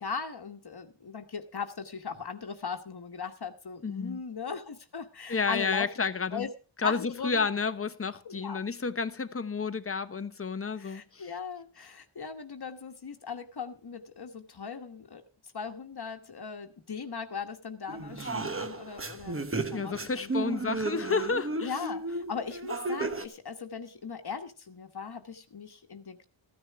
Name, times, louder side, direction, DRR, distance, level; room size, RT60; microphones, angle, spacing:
voice 1, 0.0-5.9 6.3-6.5 6.8-7.5 8.2-8.6 10.8-15.2 15.5-20.7 21.6-26.3, left 5 dB, 50° left, 1.3 m, -39 dB
voice 2, 3.8-4.2 5.3-6.5 6.8-11.3 19.7-21.8, left 5 dB, 30° left, 0.9 m, -31 dB
sound 1, 17.9-23.2, right 3 dB, 25° right, 1.1 m, -34 dB
14.5 x 10.0 x 4.7 m
wide cardioid pair, 110°, 48 cm